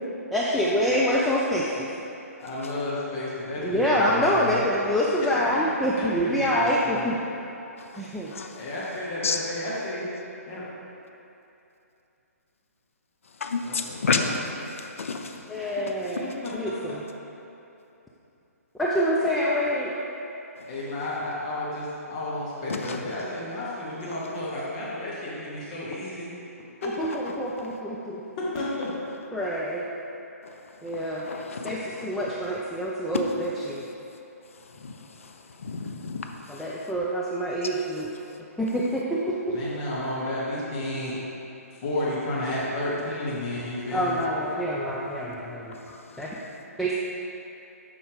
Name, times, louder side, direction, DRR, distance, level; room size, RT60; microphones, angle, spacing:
voice 1, 0.3-1.9 3.6-7.2 8.0-8.3 15.5-17.0 18.8-19.9 27.0-28.2 29.3-29.8 30.8-31.2 31.6-33.9 36.5-38.1 38.6-39.6 43.9-45.8 46.2-46.3 46.8-47.0, equal, ahead, -6 dB, 0.3 m, -26 dB
voice 2, 2.4-4.6 5.2-5.3 6.0-7.1 8.6-10.1 10.5-10.7 13.6-14.3 16.6-16.7 20.6-26.3 26.8-26.9 28.4-28.9 39.5-41.2 41.7-44.2, left 1 dB, 30° left, -7 dB, 1.1 m, -32 dB
voice 3, 7.8-8.7 9.2-9.4 13.2-15.5 20.6-20.7 22.7-23.0 24.1-24.3 27.6-27.8 30.4-32.5 33.1-33.2 34.4-36.9 38.2-38.4 45.7-46.5, left 4 dB, 55° left, 4 dB, 0.6 m, -33 dB
8.4 x 5.4 x 3.5 m, 2.9 s
figure-of-eight pair, 130°, 8 cm